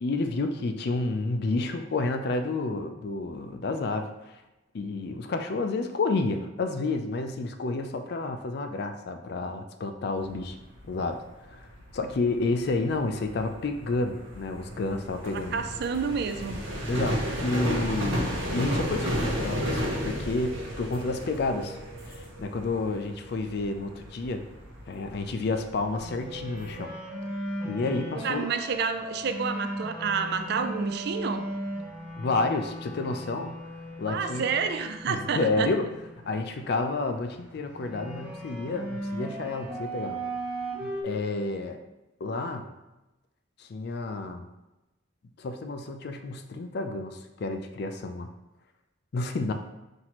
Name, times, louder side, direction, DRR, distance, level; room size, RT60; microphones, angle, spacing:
voice 1, 0.0-4.4 4.7-10.6 10.9-11.2 11.5-11.7 11.9-15.6 16.9-21.8 22.0-24.4 24.9-26.9 27.6-28.5 32.2-33.6 34.0-34.5 35.1-35.9 36.2-40.2 40.8-41.8 42.2-42.7 43.6-44.4 45.4-48.3 49.1-49.5, left 3 dB, 55° left, 7 dB, 0.4 m, -30 dB
sound 1, 10.2-26.7, equal, 70° right, 0.9 m, -34 dB
voice 2, 15.3-16.6 28.1-31.5 34.1-35.7, right 5 dB, 55° right, 7 dB, 0.3 m, -29 dB
sound 2, 21.2-41.0, right 1 dB, 5° right, 0.6 m, -38 dB
5.8 x 2.6 x 3.0 m, 1.0 s
head